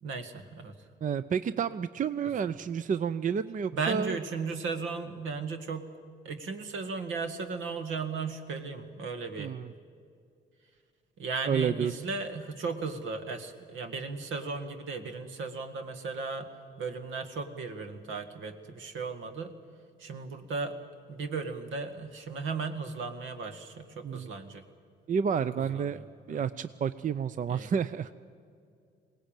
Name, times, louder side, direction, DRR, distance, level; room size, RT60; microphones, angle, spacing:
voice 1, 0.0-0.7 3.7-5.9 6.2-9.6 11.2-16.5 16.8-19.6 20.0-20.8 21.1-24.6 25.6-26.0 26.3-26.4 27.5-27.7, right 4 dB, 75° right, 8 dB, 2.0 m, -36 dB
voice 2, 1.0-4.2 9.4-9.7 11.5-11.9 24.0-24.3 25.1-26.0 26.3-28.1, right 7 dB, 40° right, 14 dB, 0.5 m, -30 dB
21.5 x 18.0 x 9.0 m, 2.4 s
cardioid pair, 90°, 20 cm